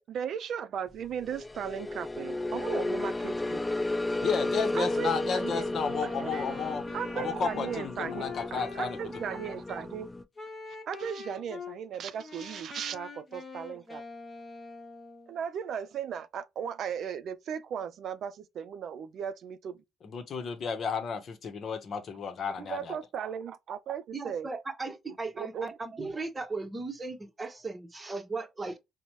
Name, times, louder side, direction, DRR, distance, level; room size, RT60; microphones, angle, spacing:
voice 1, 0.0-3.8 4.7-5.7 6.0-6.6 6.9-10.1 10.9-14.0 15.3-19.8 22.6-24.5 25.1-25.8, right 8 dB, 65° right, 0.3 m, -37 dB
sound 1, 1.2-10.2, left 2 dB, 15° left, 0.3 m, -33 dB
voice 2, 4.2-6.8 7.2-9.0 20.0-23.0, left 6 dB, 55° left, 0.8 m, -33 dB
Wind instrument woodwind instrument, 5.7-9.9 10.4-11.8 12.2-15.4, left 4 dB, 35° left, 1.0 m, -44 dB
voice 3, 24.1-28.8, right 3 dB, 25° right, 0.8 m, -37 dB
3.9 x 2.1 x 2.9 m
supercardioid pair, 70°, 0 cm